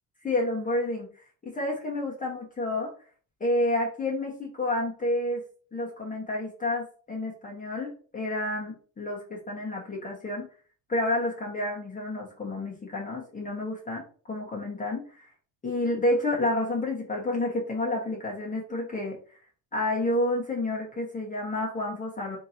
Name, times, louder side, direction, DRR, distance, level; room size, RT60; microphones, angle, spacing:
voice 1, 0.2-1.1 1.4-2.9 3.4-5.4 5.7-10.4 10.9-14.0 14.3-15.3 15.6-19.2 19.7-22.4, left 1 dB, 20° left, -3 dB, 1.2 m, -29 dB
3.7 x 2.9 x 4.1 m, 0.42 s
cardioid pair, 110°, 37 cm